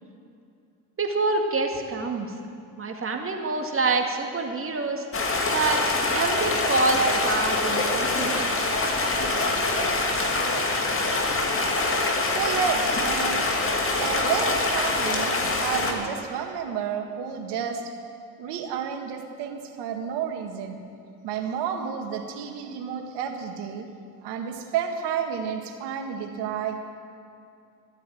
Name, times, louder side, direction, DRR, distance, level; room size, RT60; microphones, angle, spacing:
voice 1, 1.0-2.3 2.8-5.9 6.1-8.6, right 3 dB, 30° right, 2 dB, 2.1 m, -27 dB
Stream, 5.1-15.9, left 2 dB, 30° left, 2.1 m, -24 dB
voice 2, 12.2-13.5 14.0-17.9 18.4-20.8 21.2-23.9 24.2-26.8, right 7 dB, 60° right, 4 dB, 1.8 m, -31 dB
13.0 x 8.3 x 9.2 m, 2.5 s
hypercardioid pair, 70°, 46 cm